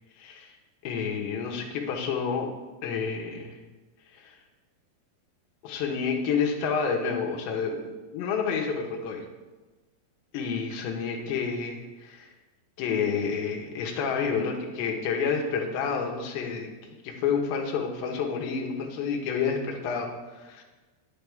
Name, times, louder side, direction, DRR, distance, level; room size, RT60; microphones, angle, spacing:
voice 1, 0.2-0.5 0.8-2.5 2.8-3.6 4.1-4.4 5.6-7.9 8.1-9.2 10.3-12.3 12.8-16.7 17.0-20.6, left 6 dB, 85° left, 1 dB, 3.3 m, -29 dB
10.0 x 8.8 x 3.6 m, 1.2 s
omnidirectional pair, 5.1 m